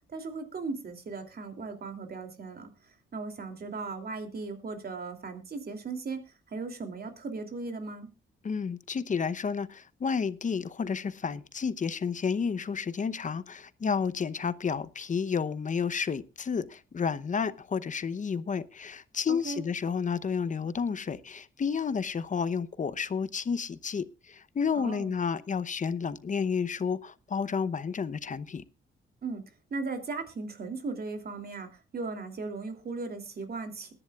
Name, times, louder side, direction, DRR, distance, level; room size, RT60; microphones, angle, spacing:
voice 1, 0.1-2.7 3.1-8.1 19.3-19.6 24.8-25.1 29.2-29.4 29.7-33.9, right 3 dB, 50° right, 2.9 m, -37 dB
voice 2, 8.4-28.6, left 6 dB, 40° left, 0.8 m, -31 dB
21.5 x 11.0 x 2.4 m
cardioid pair, 100°, 21 cm